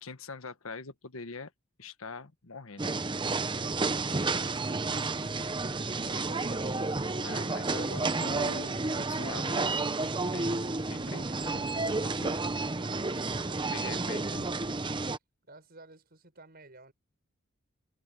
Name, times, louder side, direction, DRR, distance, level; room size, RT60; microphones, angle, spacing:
voice 1, 0.0-1.5 1.8-2.9 7.2-9.7 10.0-11.7 12.0-12.4 13.7-14.5, left 4 dB, 85° left, 1.3 m, -43 dB
sound 1, 2.8-15.2, right 3 dB, 25° right, 0.7 m, -31 dB
voice 2, 5.9-6.7 12.2-14.5 15.5-16.9, right 2 dB, 50° right, 5.9 m, -54 dB
head